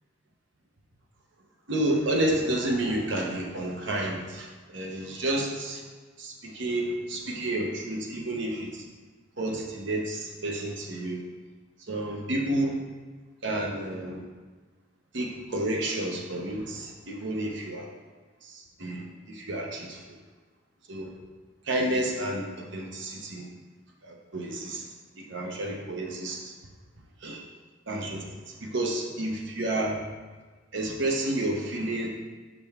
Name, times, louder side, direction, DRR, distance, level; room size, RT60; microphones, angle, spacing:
voice 1, 1.7-5.8 6.2-8.8 9.4-11.2 11.9-12.8 13.4-14.2 15.1-17.9 18.4-20.0 20.9-21.1 21.7-23.5 24.0-24.8 25.2-26.5 27.2-27.4 27.9-28.3 28.6-30.0 30.7-32.1, right 1 dB, 55° right, 0 dB, 0.8 m, -30 dB
6.6 x 5.1 x 3.5 m, 1.3 s
head